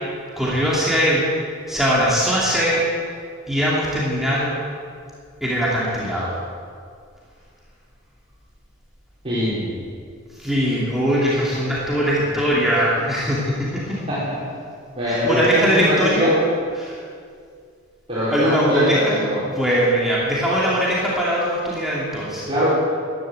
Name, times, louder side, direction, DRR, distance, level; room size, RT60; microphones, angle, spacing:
voice 1, 0.4-1.3 1.7-2.9 3.5-4.6 5.4-6.4 10.4-14.0 15.1-16.3 16.8-17.0 18.3-22.4, equal, ahead, -7 dB, 2.7 m, -21 dB
voice 2, 9.2-9.7 14.1-14.4 14.9-16.4 18.1-19.4 22.5-22.7, equal, 30° right, -12 dB, 4.9 m, -22 dB
14.0 x 12.0 x 8.0 m, 2.2 s
head